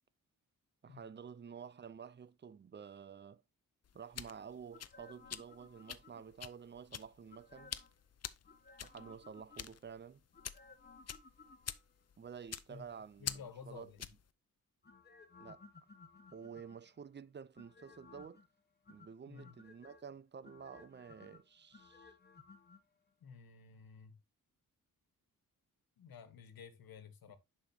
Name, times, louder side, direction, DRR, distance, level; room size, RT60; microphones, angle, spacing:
voice 1, 0.8-3.4 3.9-7.7 8.8-10.2 12.2-13.9 15.4-15.6 16.3-18.4 18.9-22.1, right 7 dB, 30° right, 0.5 m, -51 dB
sound 1, 3.8-14.3, left 8 dB, 45° left, 0.6 m, -47 dB
sound 2, 4.7-6.5 7.3-8.0 8.4-9.9 10.3-12.0 14.8-17.0 17.6-18.5 18.9-20.0 20.4-22.8 23.1-23.2, left 4 dB, 30° left, 1.3 m, -59 dB
voice 2, 13.2-14.1 19.3-19.6 23.2-24.2 26.0-27.4, left 6 dB, 85° left, 1.5 m, -53 dB
10.0 x 5.3 x 2.8 m
wide cardioid pair, 115°, 35 cm